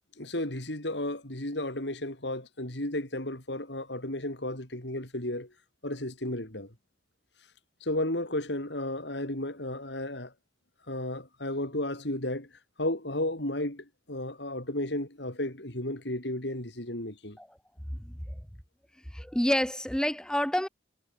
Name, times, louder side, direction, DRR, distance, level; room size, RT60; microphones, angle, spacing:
voice 1, 0.2-5.5 5.8-6.7 7.8-10.3 10.9-12.5 12.8-17.4, left 1 dB, 65° left, 5.3 m, -33 dB
voice 2, 19.1-20.7, equal, 5° left, 0.9 m, -28 dB
head